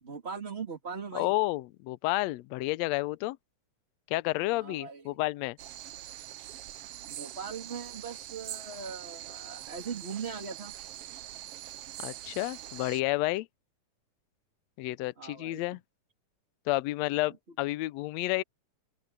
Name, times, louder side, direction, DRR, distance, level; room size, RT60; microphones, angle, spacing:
voice 1, 0.0-1.3 4.5-5.2 7.1-10.7 15.2-15.8, right 6 dB, 20° right, 2.1 m, -40 dB
voice 2, 1.1-3.4 4.1-5.6 12.0-13.5 14.8-15.8 16.7-18.4, left 19 dB, 85° left, 1.6 m, -30 dB
sound 1, 5.6-13.0, right 13 dB, 75° right, 1.3 m, -43 dB
open air
omnidirectional pair, 3.6 m